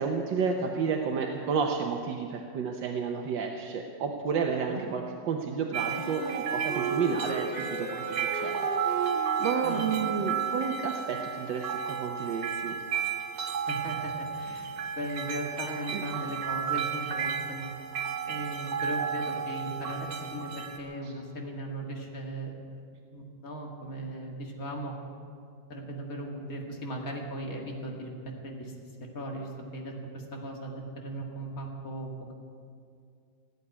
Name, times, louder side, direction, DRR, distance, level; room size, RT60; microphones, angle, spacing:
voice 1, 0.0-8.6 8.8-9.0 9.4-12.8 15.9-16.0, right 6 dB, 85° right, 2 dB, 1.7 m, -31 dB
sound 1, 5.7-20.8, right 7 dB, 60° right, 1.6 m, -33 dB
Wind instrument woodwind instrument, 5.9-10.9, right 3 dB, 30° left, 2.7 m, -37 dB
voice 2, 13.7-17.7 18.3-22.5 23.1-24.9 25.7-28.7 29.1-32.3, right 1 dB, 50° left, 0 dB, 2.5 m, -38 dB
17.5 x 8.2 x 9.6 m, 2.3 s
omnidirectional pair, 2.0 m